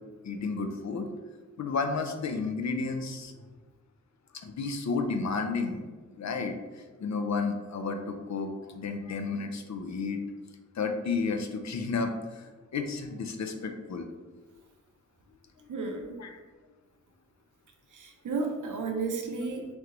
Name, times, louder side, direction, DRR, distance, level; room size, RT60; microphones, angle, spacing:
voice 1, 0.2-1.1 1.6-3.3 4.3-10.2 10.7-14.1 15.6-15.7 16.2-16.4, left 4 dB, 65° left, 5 dB, 0.5 m, -32 dB
voice 2, 15.7-16.2 17.9-19.7, right 4 dB, 90° right, 3 dB, 0.7 m, -33 dB
3.3 x 3.1 x 3.8 m, 1.3 s
wide cardioid pair, 95°, 30 cm